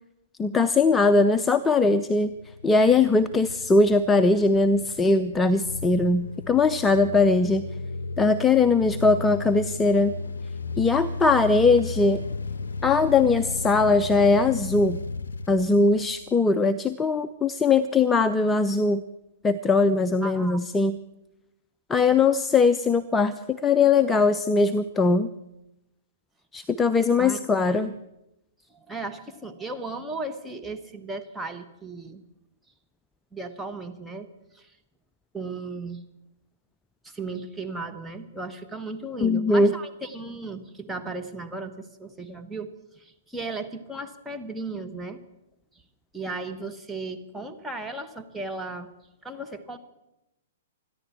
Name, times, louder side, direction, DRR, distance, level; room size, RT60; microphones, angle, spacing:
voice 1, 0.4-2.3 2.6-7.6 8.2-10.2 10.8-12.2 12.8-15.0 15.5-19.0 19.4-20.9 21.9-25.3 26.5-27.9 39.2-39.7, left 3 dB, 15° left, 12 dB, 0.5 m, -20 dB
sound 1, 2.1-16.4, left 3 dB, 70° left, 0.6 m, -35 dB
voice 2, 20.2-20.7 27.2-27.4 27.7-27.9 28.7-32.2 33.3-34.3 34.5-34.7 35.3-36.0 37.0-45.2 46.1-48.9 49.2-49.8, right 3 dB, 5° right, 3 dB, 1.2 m, -36 dB
27.0 x 10.5 x 4.6 m, 0.92 s
figure-of-eight pair, 110°, 0 cm